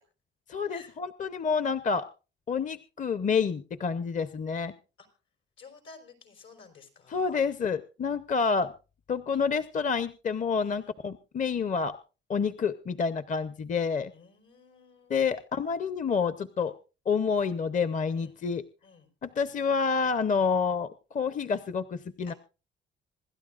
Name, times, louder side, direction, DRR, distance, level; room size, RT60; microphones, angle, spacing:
voice 1, 0.5-2.1 2.5-4.7 7.1-8.7 9.1-12.0 12.3-14.1 15.1-16.7 17.1-18.6 19.2-22.3, left 5 dB, 40° left, 13 dB, 0.7 m, -28 dB
voice 2, 5.6-7.4 10.7-11.0 14.1-15.3 16.6-16.7 18.1-18.4 18.8-19.1 22.2-22.4, left 5 dB, 85° left, 4 dB, 4.7 m, -53 dB
26.0 x 12.0 x 2.5 m, 0.32 s
cardioid pair, 90°, 20 cm